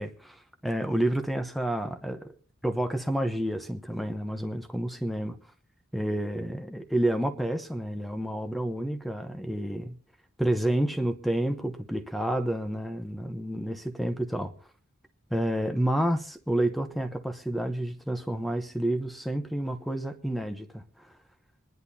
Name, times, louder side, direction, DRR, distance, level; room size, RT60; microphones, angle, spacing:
voice 1, 0.0-2.3 2.6-5.4 5.9-10.0 10.4-14.5 15.3-21.1, right 1 dB, ahead, 0.8 m, -29 dB
27.0 x 11.0 x 2.7 m
head